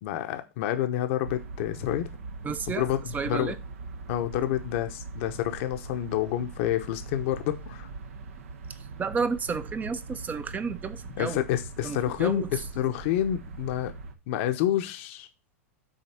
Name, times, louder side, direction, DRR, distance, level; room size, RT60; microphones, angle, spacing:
voice 1, 0.0-2.1 2.8-3.0 3.2-3.5 4.1-7.9 11.2-13.9 14.3-15.3, left 12 dB, 60° left, 0.9 m, -28 dB
sound 1, 1.2-14.1, right 3 dB, 80° right, 1.1 m, -41 dB
voice 2, 2.4-3.6 8.7-11.4 11.8-12.5, right 5 dB, 20° right, 0.6 m, -32 dB
6.5 x 4.1 x 5.7 m
hypercardioid pair, 105°, 8 cm